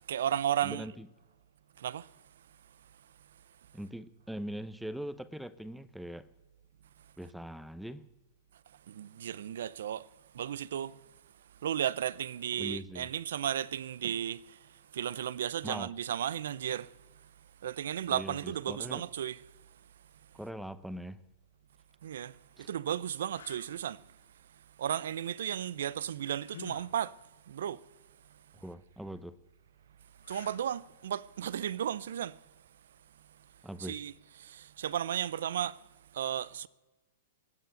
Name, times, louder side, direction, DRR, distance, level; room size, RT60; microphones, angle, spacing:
voice 1, 0.1-0.9 1.8-2.1 8.9-10.0 10.3-10.9 11.6-14.4 14.9-16.9 17.6-19.4 22.0-22.3 22.7-24.0 24.8-27.1 27.5-27.8 30.3-32.4 33.8-34.1 34.4-35.8 36.1-36.7, right 10 dB, 70° right, 0.5 m, -34 dB
voice 2, 0.6-1.1 3.7-6.3 7.2-8.1 12.6-13.1 15.6-15.9 18.1-19.0 20.3-21.2 22.6-22.7 28.5-29.3 33.6-34.0, equal, ahead, 0.7 m, -41 dB
sound 1, 21.7-21.9 22.6-22.7 23.3-23.8 26.4-27.0 30.2-30.8 33.8-34.0, left 7 dB, 80° left, 0.9 m, -49 dB
19.5 x 7.9 x 7.8 m
hypercardioid pair, 120°, 0 cm